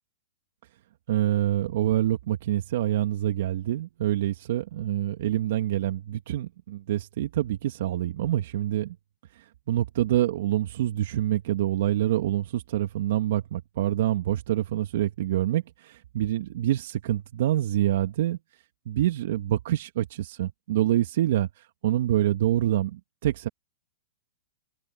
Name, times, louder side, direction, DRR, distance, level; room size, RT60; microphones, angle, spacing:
voice 1, 1.1-9.0 9.3-18.4 18.9-23.5, right 12 dB, 65° right, 2.2 m, -26 dB
hypercardioid pair, 135°, 0 cm